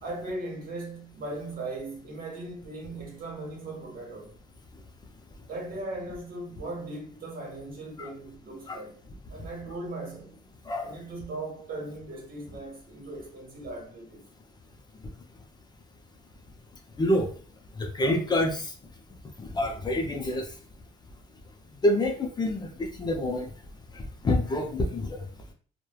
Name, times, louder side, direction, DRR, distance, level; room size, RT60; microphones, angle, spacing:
voice 1, 0.0-4.3 5.5-9.0 9.3-10.4 10.8-14.2, right 2 dB, 60° right, 1.2 m, -38 dB
voice 2, 18.0-18.6 19.5-20.4 21.8-23.4 24.2-25.1, left 1 dB, 25° left, 0.5 m, -26 dB
3.1 x 2.1 x 2.2 m
cardioid pair, 110°, 17 cm